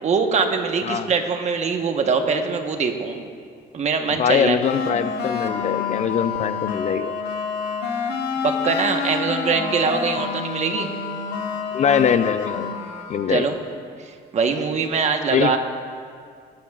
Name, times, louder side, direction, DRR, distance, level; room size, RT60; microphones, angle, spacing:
voice 1, 0.0-3.2 3.7-4.6 8.4-10.9 13.3-13.6 14.0-15.6, right 5 dB, 40° right, 5 dB, 1.2 m, -22 dB
voice 2, 4.2-7.1 11.7-12.7 13.1-13.5 15.3-15.6, left 7 dB, 45° left, 11 dB, 0.5 m, -22 dB
sound 1, 4.6-13.4, left 5 dB, 75° left, 1.3 m, -28 dB
19.5 x 13.0 x 2.4 m, 2.2 s
cardioid pair, 110°, 17 cm